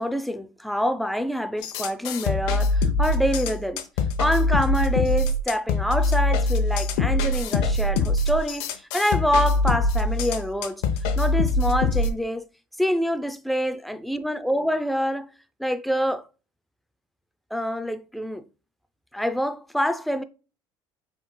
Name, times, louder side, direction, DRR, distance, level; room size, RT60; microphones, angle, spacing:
voice 1, 0.0-3.8 4.2-8.7 8.9-10.8 11.2-12.5 12.8-15.3 15.6-16.2 17.5-18.4 19.1-20.2, equal, ahead, 0.4 m, -26 dB
sound 1, 1.6-12.1, left 2 dB, 75° left, 0.8 m, -23 dB
5.1 x 3.8 x 2.2 m
supercardioid pair, 110°, 10 cm